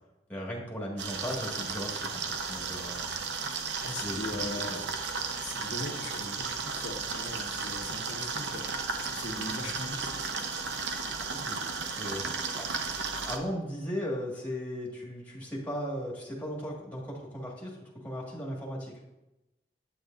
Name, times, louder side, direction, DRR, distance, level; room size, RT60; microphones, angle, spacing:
voice 1, 0.3-3.2 4.0-4.8 11.3-11.6 11.9-12.8 13.2-19.0, equal, 10° left, -4 dB, 1.8 m, -37 dB
sound 1, 1.0-13.4, right 5 dB, 80° right, 0.8 m, -34 dB
voice 2, 3.8-4.8 5.4-8.7 9.0-10.1, left 2 dB, 85° left, 3 dB, 1.1 m, -40 dB
8.7 x 8.1 x 2.6 m, 0.97 s
head